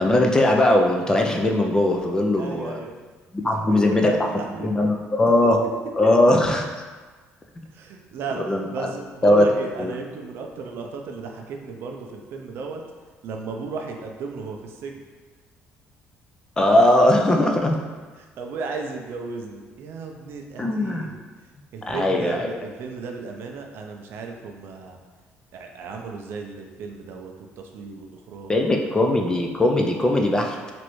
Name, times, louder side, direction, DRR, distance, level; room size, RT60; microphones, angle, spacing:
voice 1, 0.0-2.8 3.3-4.3 4.6-5.6 6.0-6.7 8.3-8.9 9.2-9.5 9.8-9.9 16.6-17.8 20.6-21.1 21.9-22.5 28.5-30.7, left 1 dB, 15° left, 2 dB, 0.3 m, -20 dB
voice 2, 2.3-3.0 3.4-4.7 6.0-6.1 7.7-12.8 13.2-15.0 18.2-21.2 21.7-25.0 25.5-28.8, right 4 dB, 65° right, 2 dB, 0.4 m, -35 dB
3.1 x 2.6 x 3.0 m, 1.4 s
cardioid pair, 110°, 4 cm